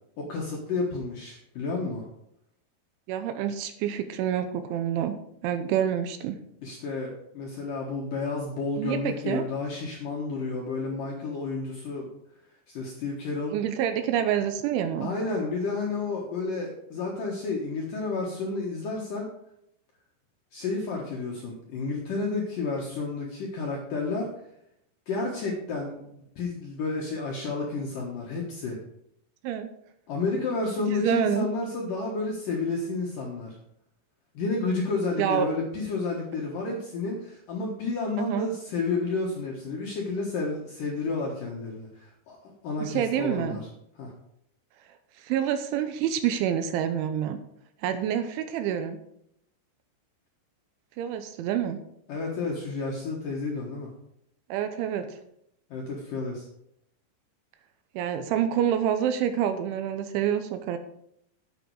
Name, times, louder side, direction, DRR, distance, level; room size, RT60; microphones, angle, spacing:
voice 1, 0.2-2.0 6.6-12.1 12.7-13.6 15.0-19.3 20.5-24.3 25.1-28.8 30.1-33.6 34.3-43.6 44.0-44.1 52.1-53.9 55.7-56.5, left 3 dB, 65° left, -2 dB, 2.2 m, -31 dB
voice 2, 3.1-5.2 5.4-6.4 8.8-9.4 13.5-15.1 29.4-29.7 30.9-31.5 35.2-35.5 38.2-38.5 42.8-43.6 45.2-47.4 47.8-49.0 51.0-51.8 54.5-55.2 58.0-60.8, right 9 dB, 80° right, 9 dB, 3.0 m, -27 dB
10.5 x 8.3 x 4.7 m, 0.74 s
omnidirectional pair, 5.8 m